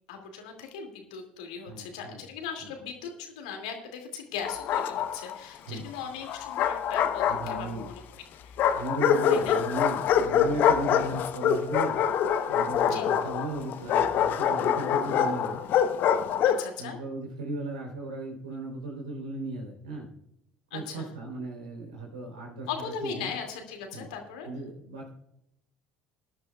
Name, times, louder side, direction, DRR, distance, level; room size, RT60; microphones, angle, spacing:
voice 1, 0.1-8.0 8.4-8.7 9.3-9.6 12.8-13.1 16.4-17.0 20.7-21.1 22.7-24.5, left 6 dB, 70° left, 3 dB, 2.5 m, -38 dB
voice 2, 1.7-2.3 2.6-2.7 5.7-5.9 7.3-7.9 8.7-12.0 12.5-15.7 16.8-20.1 20.7-23.3 23.9-24.1 24.4-25.1, right 2 dB, 80° right, 0 dB, 3.7 m, -36 dB
Bark, 4.4-5.4 6.3-7.9 8.6-16.7, left 8 dB, 55° left, 1.0 m, -25 dB
19.0 x 11.0 x 2.4 m, 0.76 s
figure-of-eight pair, 60°, 4 cm